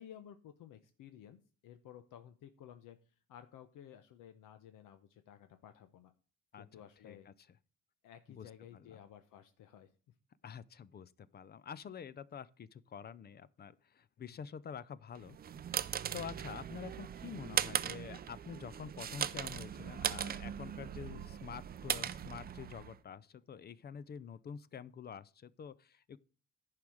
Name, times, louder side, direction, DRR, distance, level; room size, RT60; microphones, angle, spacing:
voice 1, 0.0-3.0 3.3-6.1 6.6-7.3 8.0-9.9 14.2-14.4 21.0-21.2, left 10 dB, 80° left, 0.9 m, -55 dB
voice 2, 8.3-9.0 10.4-15.4 15.7-26.2, left 7 dB, 30° left, 0.4 m, -48 dB
sound 1, 15.2-23.0, right 9 dB, 30° right, 0.4 m, -39 dB
10.5 x 4.9 x 6.2 m
cardioid pair, 140°, 32 cm